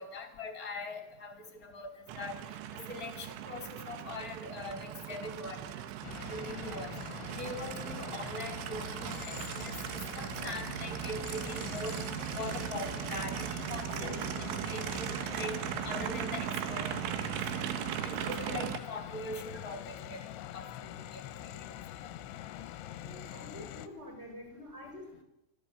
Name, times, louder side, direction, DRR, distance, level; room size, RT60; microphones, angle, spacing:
voice 1, 0.0-2.3 2.7-5.8 6.3-6.9 7.4-12.0 12.3-14.1 14.7-17.7 18.0-20.3 20.5-21.6 22.0-22.1, left 2 dB, 20° left, 4 dB, 2.5 m, -42 dB
Aircraft, 2.1-18.8, right 12 dB, 75° right, 3.4 m, -38 dB
sound 1, 6.0-23.9, left 12 dB, 75° left, 3.0 m, -44 dB
voice 2, 13.9-14.2 23.0-25.2, left 1 dB, 10° right, 2 dB, 6.5 m, -47 dB
25.5 x 14.5 x 8.6 m, 0.89 s
omnidirectional pair, 5.9 m